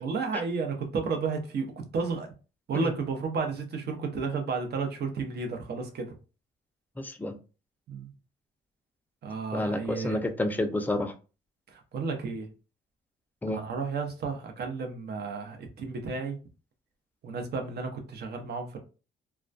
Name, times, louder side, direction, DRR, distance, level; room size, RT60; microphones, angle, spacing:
voice 1, 0.0-2.3 2.7-6.1 7.9-8.1 9.2-10.2 11.7-12.5 13.5-16.4 17.2-18.8, right 4 dB, 55° right, 0.7 m, -32 dB
voice 2, 7.0-7.3 9.5-11.1 13.4-13.6, left 1 dB, 10° left, 0.4 m, -30 dB
2.2 x 2.2 x 2.5 m
cardioid pair, 90°, 20 cm